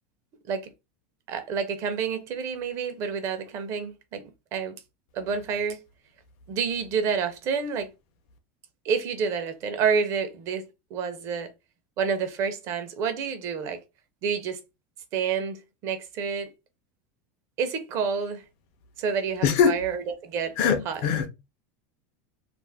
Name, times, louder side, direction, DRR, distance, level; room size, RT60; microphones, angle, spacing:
voice 1, 1.3-4.7 5.1-5.8 6.5-7.9 8.8-11.5 12.0-13.8 14.2-14.6 15.1-16.5 17.6-18.4 19.0-20.6 20.9-21.0, right 6 dB, 40° right, 0.6 m, -29 dB
voice 2, 19.4-19.9 20.6-21.3, left 7 dB, 50° left, 0.6 m, -22 dB
2.5 x 2.1 x 3.3 m
supercardioid pair, 150°, 8 cm